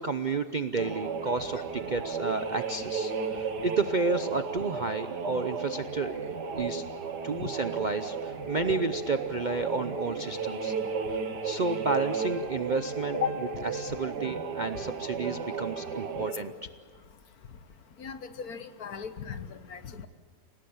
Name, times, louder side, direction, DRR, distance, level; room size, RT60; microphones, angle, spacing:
voice 1, 0.0-1.6 1.9-6.8 7.2-10.7 11.1-13.2 13.7-16.7, right 3 dB, 45° right, 9 dB, 0.6 m, -31 dB
sound 1, 0.8-16.5, right 5 dB, 80° right, 2.1 m, -34 dB
voice 2, 18.0-20.1, left 8 dB, 65° left, 10 dB, 1.7 m, -35 dB
28.5 x 18.0 x 8.7 m, 1.5 s
omnidirectional pair, 1.8 m